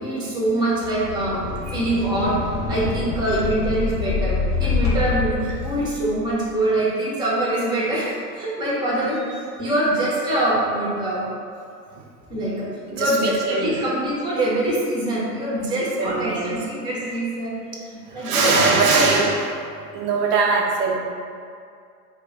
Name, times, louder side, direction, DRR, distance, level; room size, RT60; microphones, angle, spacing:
voice 1, 0.0-2.4 2.7-9.2 9.6-11.2 12.3-12.7 12.9-17.6 18.1-19.0, right 1 dB, 10° right, -7 dB, 0.6 m, -24 dB
sound 1, 0.8-6.4, left 4 dB, 50° left, 0.8 m, -26 dB
voice 2, 12.9-13.7 16.0-16.5 18.1-19.6 19.9-21.0, right 4 dB, 70° right, -2 dB, 0.6 m, -21 dB
2.2 x 2.1 x 3.7 m, 2.3 s
figure-of-eight pair, 85°, 49 cm